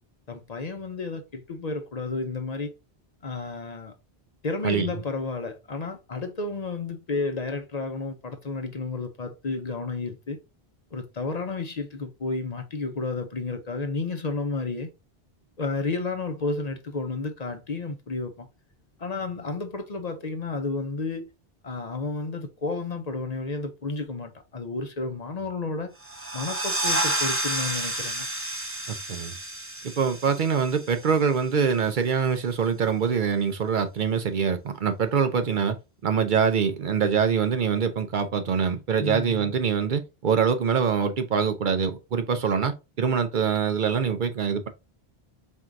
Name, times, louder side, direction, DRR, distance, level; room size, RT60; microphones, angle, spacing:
voice 1, 0.3-2.7 3.2-3.9 4.4-10.4 10.9-14.9 15.6-18.5 19.0-21.3 21.6-25.9 26.3-28.3 39.0-39.5, left 3 dB, 45° left, 0.7 m, -31 dB
sound 1, 26.0-31.4, right 1 dB, 15° right, 0.5 m, -30 dB
voice 2, 28.9-29.4 29.8-35.8 36.0-44.7, right 6 dB, 60° right, 0.7 m, -24 dB
4.5 x 3.6 x 2.5 m
omnidirectional pair, 1.0 m